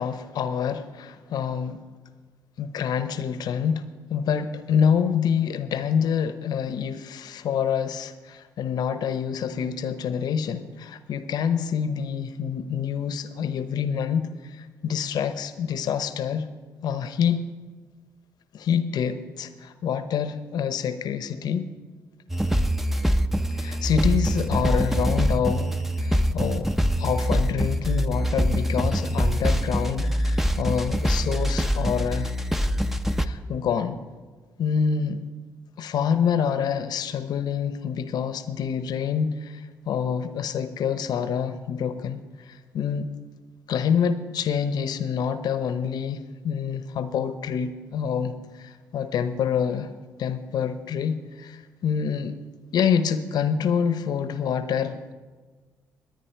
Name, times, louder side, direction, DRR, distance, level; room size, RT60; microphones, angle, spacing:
voice 1, 0.0-1.8 2.6-16.5 16.8-17.5 18.5-21.7 23.5-25.7 26.0-26.7 27.0-32.3 33.2-34.0 34.6-35.3 35.8-43.1 43.7-49.9 50.2-52.4 52.7-55.1, left 7 dB, 70° left, 11 dB, 0.8 m, -27 dB
sound 1, 22.3-33.3, equal, 5° right, 0.7 m, -24 dB
21.0 x 9.3 x 4.6 m, 1.4 s
supercardioid pair, 55°, 7 cm